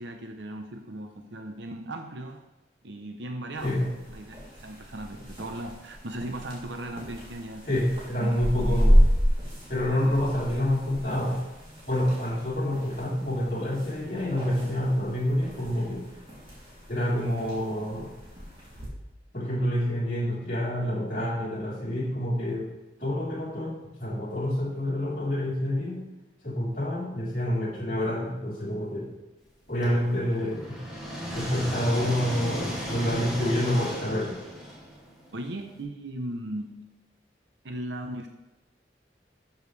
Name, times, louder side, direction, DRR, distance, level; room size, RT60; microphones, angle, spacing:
voice 1, 0.0-2.4 2.8-3.8 4.1-7.6 8.2-8.8 35.3-36.8 37.6-38.3, right 1 dB, 90° right, 4 dB, 0.8 m, -37 dB
voice 2, 3.6-3.9 7.7-9.1 9.7-11.4 11.9-16.1 16.9-18.1 19.3-22.7 23.0-26.0 26.4-29.1 29.7-30.8 31.3-34.4, left 1 dB, 45° left, -6 dB, 3.5 m, -28 dB
sound 1, 3.6-18.9, equal, 30° right, 2.9 m, -30 dB
sound 2, 29.8-35.7, equal, 5° right, 2.2 m, -35 dB
12.0 x 7.2 x 3.3 m, 1.1 s
head